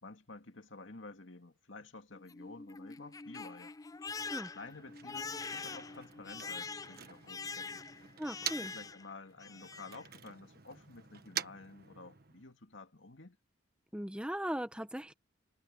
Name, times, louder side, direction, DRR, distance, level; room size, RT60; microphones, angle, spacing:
voice 1, 0.0-3.7 4.5-7.8 8.4-13.4, left 3 dB, 70° left, 2.3 m, -51 dB
Crying sobbing, 2.1-9.1 9.4-10.0, left 4 dB, 20° left, 0.4 m, -44 dB
Motor vehicle (road), 4.5-8.9 9.2-12.5, right 9 dB, 50° right, 1.4 m, -46 dB
voice 2, 8.2-8.7 13.9-15.1, equal, 5° right, 1.2 m, -38 dB
head